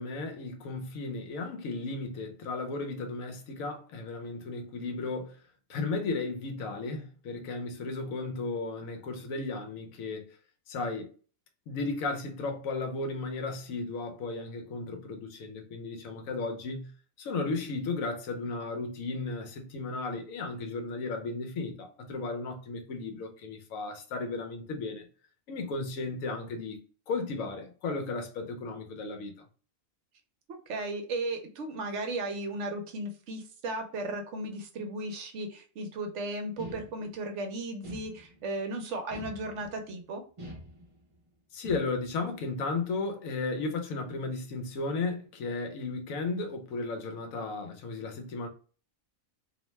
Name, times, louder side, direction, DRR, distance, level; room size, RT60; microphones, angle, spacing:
voice 1, 0.0-5.3 5.7-10.3 10.7-11.1 11.7-16.9 17.2-25.0 25.5-26.8 27.1-29.3 41.5-48.5, left 3 dB, 80° left, 1.1 m, -34 dB
voice 2, 30.5-40.2, right 2 dB, 70° right, 0.9 m, -35 dB
sound 1, 36.6-37.3 37.8-38.6 39.1-39.9 40.4-41.2 41.6-42.2, equal, 35° right, 0.5 m, -45 dB
2.7 x 2.1 x 3.0 m
omnidirectional pair, 1.4 m